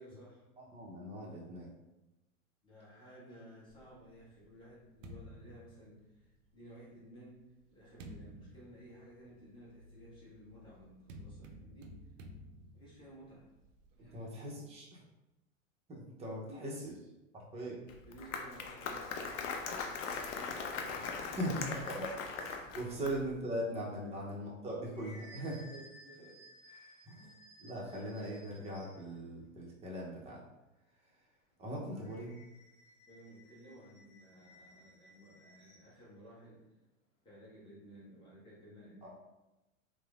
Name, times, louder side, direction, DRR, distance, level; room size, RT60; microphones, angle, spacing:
voice 1, 0.0-0.4 2.6-7.4 7.7-12.0 12.7-13.5 14.0-14.3 16.5-16.7 18.0-21.5 24.0-24.2 25.4-27.1 33.1-36.7 37.2-39.1, equal, 10° left, -8 dB, 1.0 m, -55 dB
voice 2, 0.6-1.7 14.0-15.0 15.9-16.9 17.3-17.8 21.3-22.1 22.4-25.7 27.1-27.3 27.6-30.4 31.6-32.3 39.0-39.1, equal, 15° right, -3 dB, 0.5 m, -40 dB
sound 1, 3.8-6.5 7.2-14.3, equal, 65° right, 0.5 m, -54 dB
Applause, 17.9-23.4, left 5 dB, 65° left, 0.5 m, -40 dB
sound 2, 24.4-29.2 31.9-35.9, left 1 dB, 40° left, 0.9 m, -58 dB
3.1 x 2.0 x 2.3 m, 0.98 s
hypercardioid pair, 105°, 41 cm